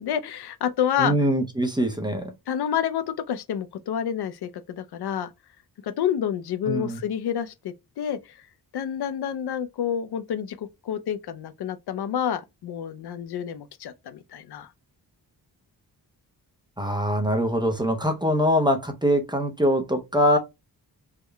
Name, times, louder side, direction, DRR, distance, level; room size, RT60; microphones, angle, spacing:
voice 1, 0.0-1.1 2.5-5.3 5.8-8.4 8.7-14.7, left 9 dB, 70° left, 0.5 m, -29 dB
voice 2, 1.0-2.3 6.7-7.0 16.8-20.4, equal, 10° right, 0.5 m, -23 dB
3.6 x 2.1 x 3.3 m
wide cardioid pair, 130°, 41 cm